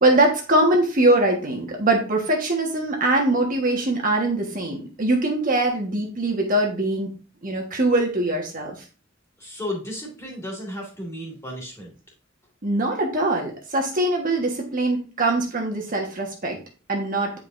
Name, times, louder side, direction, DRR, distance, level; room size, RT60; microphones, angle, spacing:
voice 1, 0.0-7.1 7.4-8.8 12.6-16.6 16.9-17.3, right 2 dB, 45° right, 1 dB, 1.4 m, -22 dB
voice 2, 9.4-11.9, left 1 dB, 15° left, -2 dB, 2.5 m, -33 dB
9.2 x 4.9 x 2.6 m, 0.35 s
head